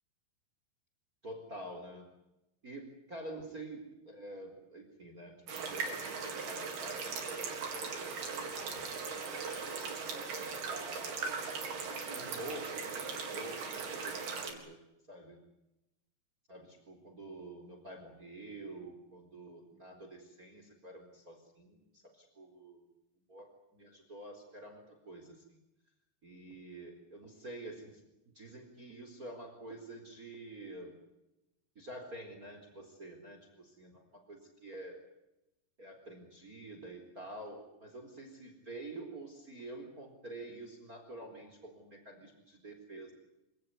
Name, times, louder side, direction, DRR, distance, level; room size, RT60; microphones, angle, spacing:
voice 1, 1.2-2.1 2.6-11.1 11.9-14.8 15.1-15.4 16.5-22.9 23.3-25.4 26.2-28.0 28.3-30.9 31.8-35.0 35.8-43.1, right 1 dB, 20° right, 5 dB, 4.2 m, -48 dB
sound 1, 5.5-14.5, right 5 dB, 65° right, 5.9 m, -39 dB
27.5 x 18.0 x 9.7 m, 0.92 s
omnidirectional pair, 4.9 m